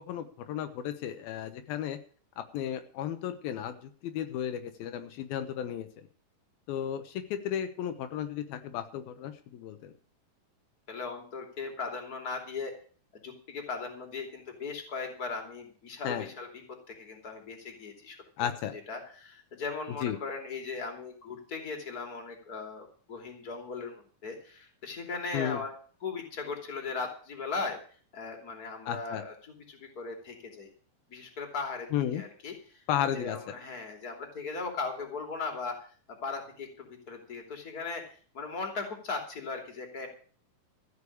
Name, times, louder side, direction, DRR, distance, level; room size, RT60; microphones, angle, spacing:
voice 1, 0.0-2.0 2.4-5.9 6.7-9.9 16.0-16.3 18.4-18.7 20.0-20.2 25.3-25.6 28.9-29.2 31.9-32.2 32.9-33.4, left 10 dB, 85° left, 9 dB, 2.9 m, -34 dB
voice 2, 10.9-12.7 13.1-18.5 18.9-25.7 26.0-27.8 28.1-30.7 31.1-32.8 33.1-35.9 36.2-40.1, left 4 dB, 25° left, 3 dB, 3.1 m, -38 dB
14.5 x 6.8 x 8.4 m, 0.42 s
omnidirectional pair, 4.2 m